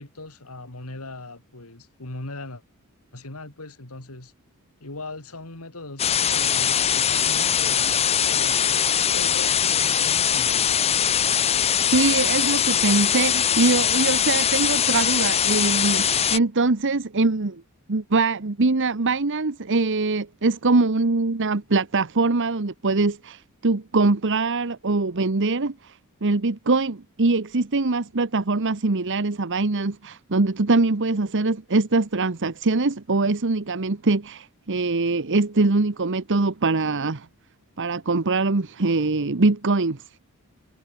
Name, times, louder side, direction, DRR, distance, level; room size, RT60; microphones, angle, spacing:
voice 1, 0.0-2.6 3.1-4.3 4.8-10.7, left 2 dB, 75° left, 3.3 m, -39 dB
sound 1, 6.0-16.4, left 9 dB, 30° left, 0.6 m, -21 dB
voice 2, 11.9-17.6 17.9-37.3 37.8-40.0, right 3 dB, 60° right, 1.1 m, -23 dB
head